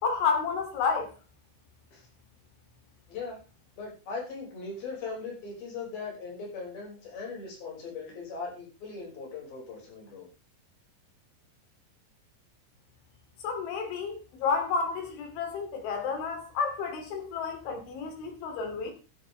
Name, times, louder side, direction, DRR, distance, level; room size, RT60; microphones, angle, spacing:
voice 1, 0.0-1.1 13.4-18.9, left 5 dB, 80° left, 5.4 m, -30 dB
voice 2, 3.8-10.3, left 4 dB, 50° left, 7.4 m, -39 dB
13.5 x 11.5 x 3.4 m
omnidirectional pair, 5.3 m